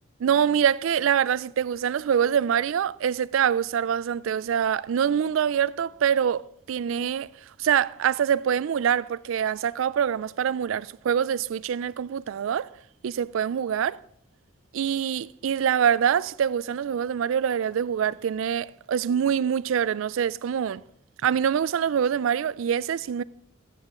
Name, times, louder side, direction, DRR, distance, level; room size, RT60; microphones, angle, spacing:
voice 1, 0.2-7.3 7.6-12.7 13.0-14.0 14.7-20.8 21.2-23.2, right 8 dB, 75° right, 0.3 m, -25 dB
13.5 x 9.6 x 3.7 m
head